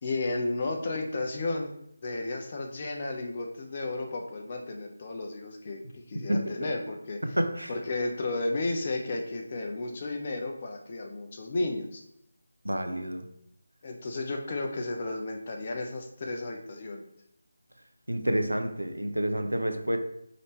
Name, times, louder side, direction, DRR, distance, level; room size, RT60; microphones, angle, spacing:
voice 1, 0.0-1.7 2.0-7.4 7.7-12.0 13.8-17.0, left 2 dB, 35° left, 2 dB, 0.6 m, -33 dB
voice 2, 7.4-7.7 12.6-13.2 18.1-20.0, equal, 85° right, 6 dB, 0.6 m, -28 dB
5.1 x 2.8 x 3.0 m, 0.76 s
figure-of-eight pair, 160°, 0 cm